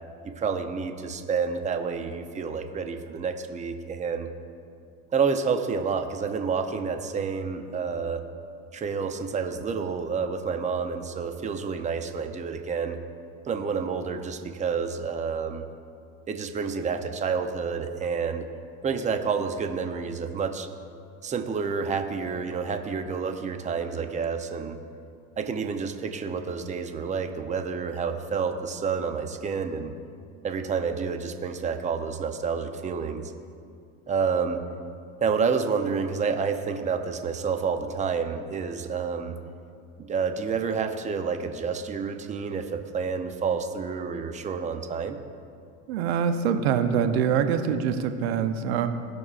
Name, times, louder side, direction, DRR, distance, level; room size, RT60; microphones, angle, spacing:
voice 1, 0.2-4.3 5.1-8.2 8.7-13.0 13.5-15.6 16.3-18.5 18.8-20.7 21.2-24.8 25.4-29.9 30.4-33.3 34.1-34.6 35.2-39.4 40.0-45.2, right 5 dB, 25° right, 6 dB, 0.7 m, -29 dB
voice 2, 45.9-48.9, right 7 dB, 85° right, 8 dB, 0.8 m, -24 dB
18.0 x 6.2 x 2.5 m, 2.4 s
supercardioid pair, 100°, 31 cm